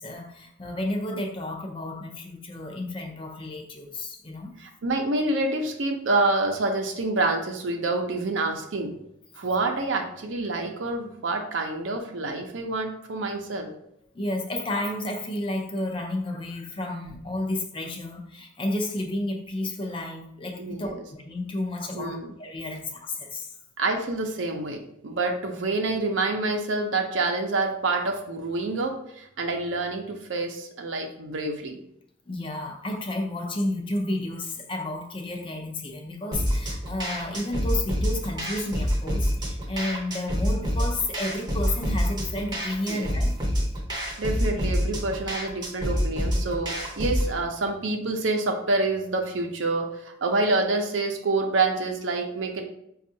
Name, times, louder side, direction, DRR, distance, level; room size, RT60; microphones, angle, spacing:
voice 1, 0.0-4.5 14.1-23.5 32.3-43.3, left 1 dB, 25° left, 2 dB, 0.5 m, -31 dB
voice 2, 4.6-9.0 9.4-13.7 20.6-21.0 21.9-22.3 23.8-31.8 42.9-43.1 44.2-52.6, right 2 dB, 80° right, 3 dB, 0.6 m, -27 dB
sound 1, 36.3-47.3, equal, 20° right, 0.7 m, -27 dB
5.2 x 2.4 x 2.7 m, 0.74 s
head